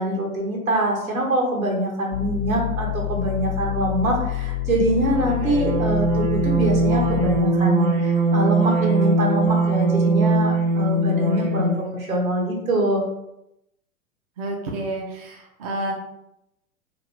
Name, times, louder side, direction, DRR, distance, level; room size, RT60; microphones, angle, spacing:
voice 1, 0.0-7.9 8.3-13.0, right 1 dB, 70° right, -2 dB, 1.4 m, -24 dB
sound 1, 2.1-7.4, left 14 dB, 35° left, 0.6 m, -27 dB
sound 2, 5.1-11.9, right 3 dB, 50° right, 1.1 m, -21 dB
voice 2, 14.4-15.9, right 2 dB, 30° right, 1 dB, 0.4 m, -29 dB
3.0 x 2.5 x 3.8 m, 0.86 s
figure-of-eight pair, 105°, 42 cm